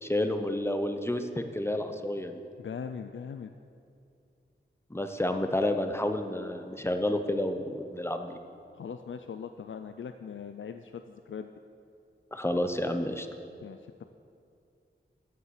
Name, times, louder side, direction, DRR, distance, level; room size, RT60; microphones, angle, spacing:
voice 1, 0.0-2.4 4.9-8.4 12.3-13.3, left 1 dB, 15° left, 6 dB, 0.8 m, -30 dB
voice 2, 2.6-3.5 8.7-11.5 13.6-13.8, left 6 dB, 90° left, 8 dB, 0.4 m, -40 dB
14.5 x 6.8 x 6.5 m, 2.5 s
wide cardioid pair, 80°, 20 cm